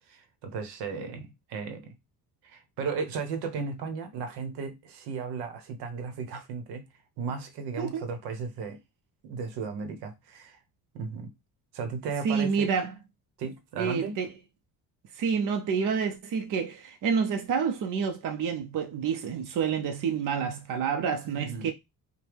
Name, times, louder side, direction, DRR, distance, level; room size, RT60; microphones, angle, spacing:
voice 1, 0.1-1.9 2.4-6.9 7.2-8.8 9.2-10.6 10.9-11.3 11.7-12.7 13.4-14.2 21.2-21.7, right 5 dB, 85° right, 1.0 m, -35 dB
voice 2, 12.2-13.0 13.8-14.3 15.2-21.7, right 6 dB, 55° right, 0.8 m, -28 dB
4.7 x 2.2 x 3.4 m
cardioid pair, 100°, 38 cm